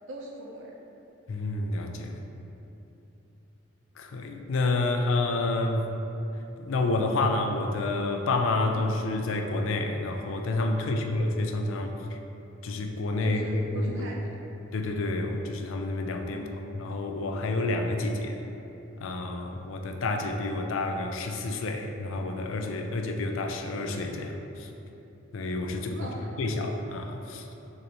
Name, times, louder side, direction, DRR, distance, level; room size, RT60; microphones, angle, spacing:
voice 1, 0.1-0.7 8.6-8.8 10.7-11.0 13.2-14.4 16.3-16.7 25.9-26.3, right 1 dB, 75° right, -2 dB, 0.7 m, -41 dB
voice 2, 1.3-2.2 4.0-5.9 6.6-12.2 12.6-14.0 14.7-16.5 16.7-18.4 19.0-24.7 25.3-26.1 26.4-27.4, left 2 dB, 85° left, 4 dB, 0.4 m, -29 dB
6.4 x 2.7 x 2.9 m, 3.0 s
head